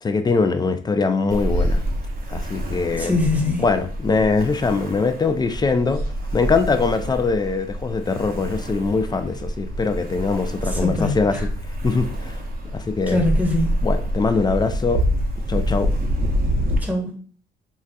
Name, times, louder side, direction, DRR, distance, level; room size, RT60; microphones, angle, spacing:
voice 1, 0.0-1.8 2.3-3.2 3.6-6.0 6.3-11.5 11.8-12.4 12.7-13.2 13.8-15.0 15.5-15.9, left 4 dB, 20° left, 0.3 m, -22 dB
Ocean, 1.3-16.8, equal, 45° right, 0.7 m, -26 dB
voice 2, 3.0-3.6 10.7-11.4 13.1-13.8 16.8-17.2, left 2 dB, 10° right, 0.9 m, -23 dB
4.0 x 2.3 x 2.2 m
cardioid pair, 90°, 20 cm